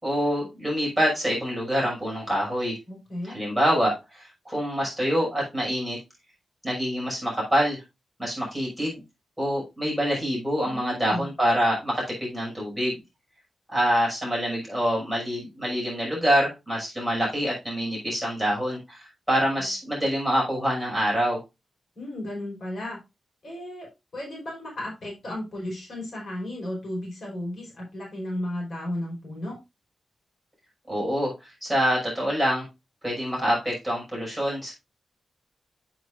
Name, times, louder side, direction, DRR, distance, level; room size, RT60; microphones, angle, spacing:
voice 1, 0.0-2.8 3.2-6.0 6.6-7.8 8.2-9.0 9.4-13.0 13.7-21.4 30.9-32.6 33.0-34.7, equal, ahead, -4 dB, 6.0 m, -26 dB
voice 2, 2.9-3.4 10.6-11.3 19.6-19.7 21.9-23.0 23.4-23.9 24.1-29.6, left 1 dB, 55° left, -2 dB, 4.9 m, -34 dB
8.9 x 8.0 x 2.6 m, 0.23 s
wide cardioid pair, 120°, 0 cm